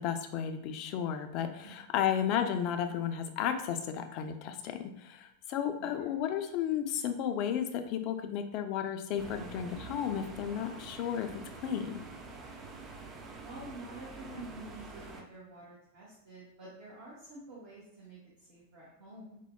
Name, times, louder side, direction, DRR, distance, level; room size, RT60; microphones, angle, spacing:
voice 1, 0.0-11.3 11.6-12.0, left 9 dB, 40° left, 6 dB, 0.3 m, -33 dB
voice 2, 1.6-2.2 5.8-6.0 13.4-19.4, right 2 dB, 50° right, -6 dB, 0.9 m, -49 dB
sound 1, 9.2-15.2, right 3 dB, 25° right, 0.4 m, -46 dB
4.3 x 2.0 x 2.2 m, 0.77 s
figure-of-eight pair, 90°, 0 cm